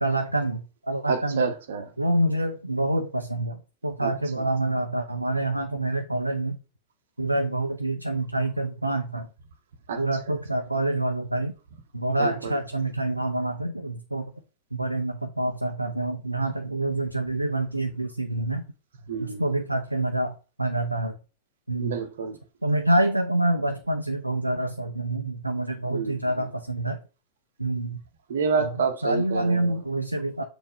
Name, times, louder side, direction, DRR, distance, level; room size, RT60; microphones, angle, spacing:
voice 1, 0.0-1.5 2.0-6.6 7.2-9.3 10.0-11.5 11.9-14.3 14.7-18.6 19.2-21.2 21.7-21.9 22.6-27.0 27.6-28.0 28.6-28.7 29.0-30.4, right 1 dB, 85° right, 0.4 m, -27 dB
voice 2, 1.1-1.9 4.0-4.5 9.9-10.0 12.2-12.6 19.1-19.4 21.8-22.4 25.9-26.3 28.3-29.8, right 5 dB, 60° right, 0.8 m, -28 dB
4.3 x 2.7 x 4.2 m
figure-of-eight pair, 90°, 0 cm